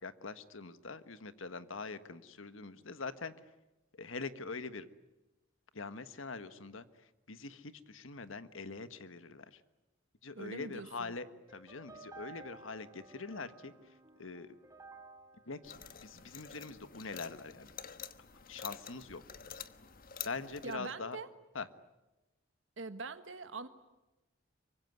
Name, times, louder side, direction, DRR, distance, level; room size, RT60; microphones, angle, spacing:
voice 1, 0.0-3.3 4.0-4.9 5.7-6.8 7.3-9.6 10.2-13.7 14.2-14.6 15.5-15.7 16.0-17.7 18.5-19.2 20.2-21.2 21.5-21.7, left 4 dB, 80° left, 12 dB, 1.4 m, -43 dB
voice 2, 10.3-11.1 20.6-21.3 22.8-23.7, right 3 dB, 70° right, 9 dB, 1.5 m, -43 dB
sound 1, 11.5-16.8, right 3 dB, 15° right, 2.3 m, -55 dB
sound 2, 15.6-20.8, left 8 dB, 45° left, 1.2 m, -48 dB
26.0 x 24.0 x 9.5 m, 1.0 s
head